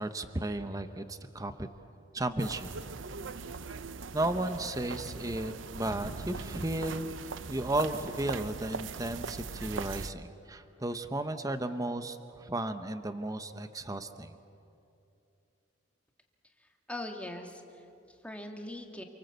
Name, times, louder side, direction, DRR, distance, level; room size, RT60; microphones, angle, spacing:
voice 1, 0.0-1.7 2.1-2.7 4.1-7.1 7.5-14.4, right 1 dB, 20° right, 9 dB, 0.9 m, -34 dB
sound 1, 2.4-10.1, right 4 dB, 75° right, 0.7 m, -40 dB
voice 2, 16.6-19.0, left 1 dB, 5° left, 3 dB, 1.9 m, -42 dB
28.0 x 24.5 x 8.1 m, 2.7 s
head